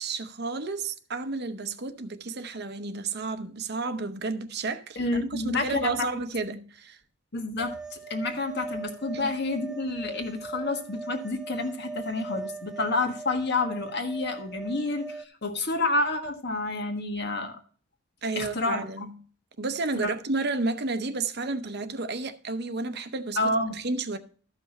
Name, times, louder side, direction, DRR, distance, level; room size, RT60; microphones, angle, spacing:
voice 1, 0.0-7.0 9.1-9.3 18.2-19.2 19.6-24.2, right 3 dB, 55° right, 0.8 m, -31 dB
voice 2, 5.0-6.1 7.3-17.6 18.3-18.8 20.0-20.1 23.4-23.8, left 2 dB, 55° left, 1.4 m, -29 dB
sound 1, 7.6-15.2, right 3 dB, 5° right, 0.4 m, -40 dB
13.5 x 5.7 x 4.2 m
head